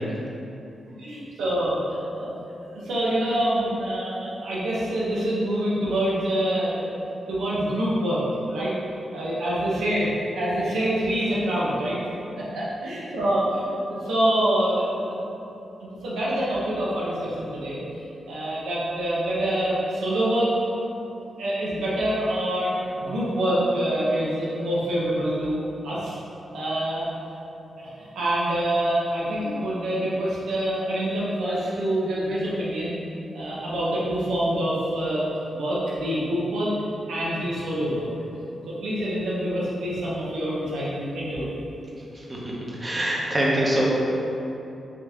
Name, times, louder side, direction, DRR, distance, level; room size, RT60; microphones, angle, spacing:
voice 1, 1.0-7.0 7.3-8.7 9.1-10.1 10.4-12.0 12.4-15.2 15.8-17.8 18.3-20.5 21.4-26.2 26.5-27.1 27.8-32.9 33.3-35.2 35.5-36.7 37.1-38.1 38.7-41.5, right 1 dB, 90° right, -7 dB, 0.8 m, -26 dB
voice 2, 42.8-43.9, right 1 dB, 25° right, -5 dB, 0.9 m, -24 dB
3.7 x 2.8 x 3.5 m, 2.9 s
cardioid pair, 70°, 0 cm